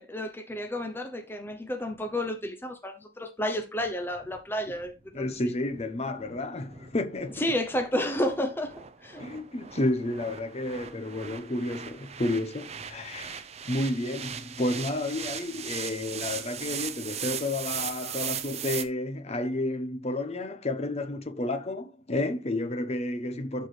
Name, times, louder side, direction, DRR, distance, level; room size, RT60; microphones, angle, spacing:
voice 1, 0.0-5.3 7.4-8.7 9.0-9.2, left 1 dB, 10° left, 0.7 m, -31 dB
sound 1, 3.8-18.8, right 8 dB, 35° right, 0.7 m, -39 dB
voice 2, 5.1-7.4 9.2-13.4 13.7-23.7, left 2 dB, 35° left, 0.9 m, -31 dB
11.5 x 4.5 x 3.3 m
head